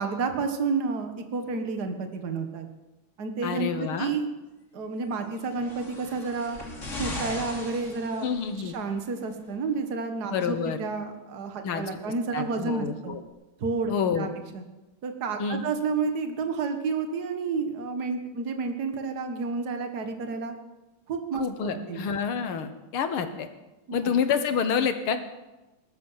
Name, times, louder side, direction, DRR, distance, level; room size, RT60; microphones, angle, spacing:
voice 1, 0.0-2.7 3.2-4.3 4.7-6.6 7.0-8.3 8.6-13.2 13.6-14.3 14.5-14.6 15.0-20.6 21.1-22.0 23.9-24.2, right 4 dB, 50° right, 6 dB, 2.0 m, -30 dB
voice 2, 3.4-4.1 8.2-8.7 10.3-10.8 11.6-11.9 12.3-13.2 13.9-14.3 15.4-15.7 21.3-23.5 23.9-25.2, left 6 dB, 75° left, 9 dB, 2.1 m, -28 dB
sound 1, 5.4-8.7 9.7-9.8, left 2 dB, 35° left, 3.0 m, -38 dB
19.5 x 13.0 x 5.7 m, 1.0 s
omnidirectional pair, 2.4 m